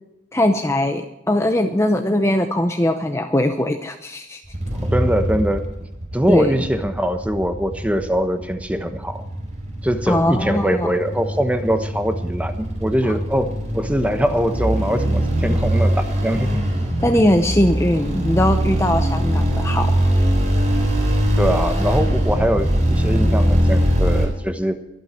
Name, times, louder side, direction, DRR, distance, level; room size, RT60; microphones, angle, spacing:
voice 1, 0.3-4.4 6.3-6.6 10.1-10.9 13.0-13.2 17.0-19.9, left 1 dB, 15° left, 5 dB, 0.8 m, -20 dB
sound 1, 4.5-24.3, equal, 40° right, 3.8 m, -22 dB
voice 2, 4.9-5.7 6.1-9.2 9.8-16.6 21.4-24.8, equal, 5° right, 7 dB, 1.1 m, -22 dB
24.0 x 9.0 x 4.5 m, 0.90 s
head